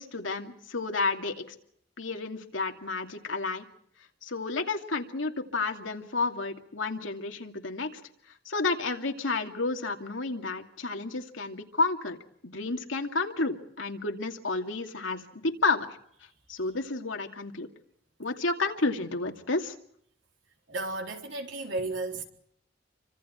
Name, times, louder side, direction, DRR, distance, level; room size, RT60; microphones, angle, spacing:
voice 1, 0.0-1.5 2.0-3.6 4.2-8.0 8.4-12.2 12.4-15.9 16.5-17.7 18.2-19.8, left 3 dB, 85° left, 2.6 m, -31 dB
voice 2, 20.7-22.2, right 2 dB, 70° right, 4.0 m, -33 dB
29.0 x 25.5 x 4.5 m
head